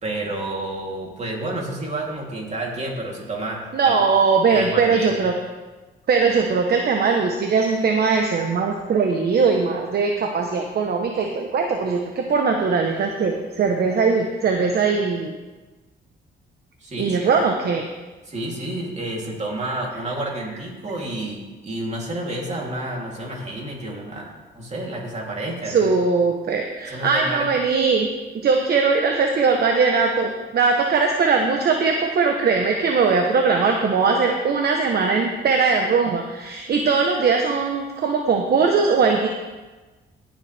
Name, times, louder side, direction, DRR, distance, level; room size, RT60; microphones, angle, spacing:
voice 1, 0.0-4.0 4.5-5.3 16.8-17.4 18.3-25.9 26.9-27.5, right 1 dB, 35° right, -2 dB, 3.0 m, -30 dB
voice 2, 3.7-5.3 6.1-15.4 17.0-17.8 25.7-28.1 28.3-39.3, right 4 dB, 55° right, 3 dB, 1.0 m, -20 dB
17.0 x 7.3 x 3.4 m, 1.2 s
cardioid pair, 90°, 20 cm